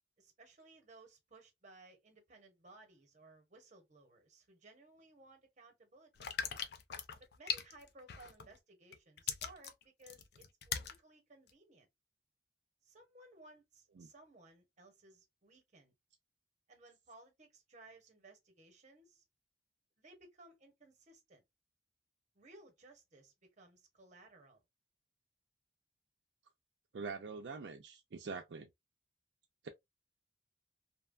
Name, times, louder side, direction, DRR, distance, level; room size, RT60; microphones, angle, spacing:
voice 1, 0.2-6.3 7.2-11.9 12.8-15.9 16.7-19.2 20.0-21.4 22.3-24.6, right 2 dB, 45° right, 0.9 m, -60 dB
sound 1, 6.2-8.6 8.9-11.0 11.5-11.6, left 7 dB, 65° left, 0.4 m, -40 dB
voice 2, 26.9-28.7 29.6-29.7, right 4 dB, 75° right, 0.4 m, -44 dB
2.8 x 2.2 x 2.4 m
head